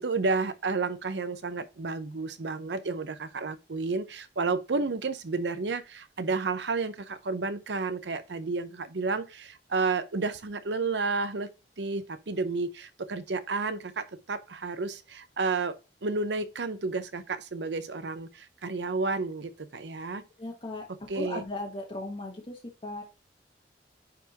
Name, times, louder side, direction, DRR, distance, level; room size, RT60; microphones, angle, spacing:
voice 1, 0.0-11.5 11.8-20.2 21.1-21.4, right 3 dB, 80° right, 0.7 m, -31 dB
voice 2, 20.4-20.8 21.1-23.0, left 2 dB, 30° left, 1.2 m, -37 dB
9.7 x 3.5 x 2.9 m
head